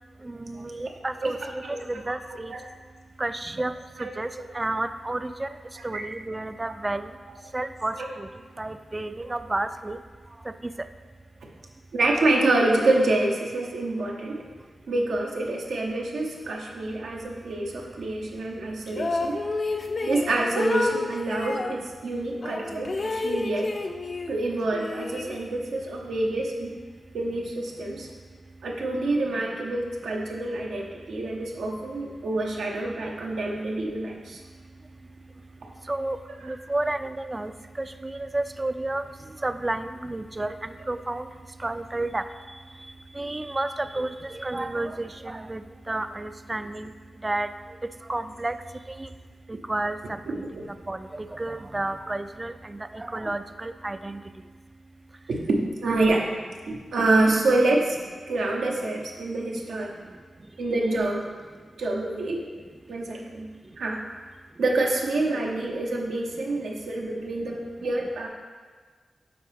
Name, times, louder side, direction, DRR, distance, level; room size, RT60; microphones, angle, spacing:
voice 1, 0.2-1.6 1.9-2.5 3.2-3.7 4.2-4.3 4.5-5.5 5.8-7.1 7.5-8.3 8.6-10.0 35.9-36.2 36.4-37.5 37.8-39.0 39.4-41.3 41.6-42.2 43.2-45.6 45.9-46.9 47.2-47.5 48.1-48.6 49.0-49.1 49.5-50.0 50.9-52.5 52.9-54.2, right 2 dB, 25° right, 11 dB, 0.3 m, -31 dB
voice 2, 1.2-2.0 2.5-2.6 4.0-4.1 5.9-6.0 8.0-8.1 11.9-14.4 14.9-19.4 20.0-23.7 24.3-26.7 27.1-28.1 28.6-34.4 36.4-36.5 50.3-50.7 55.3-56.3 56.7-58.0 58.3-59.9 60.6-61.2 61.8-62.5 62.9-63.5 63.8-64.0 64.6-68.3, right 2 dB, 85° right, -1 dB, 0.9 m, -27 dB
sound 1, 18.9-21.7 22.4-24.4 24.7-25.8, left 3 dB, 55° left, 0.5 m, -30 dB
7.6 x 4.6 x 3.5 m, 1.5 s
cardioid pair, 50°, 0 cm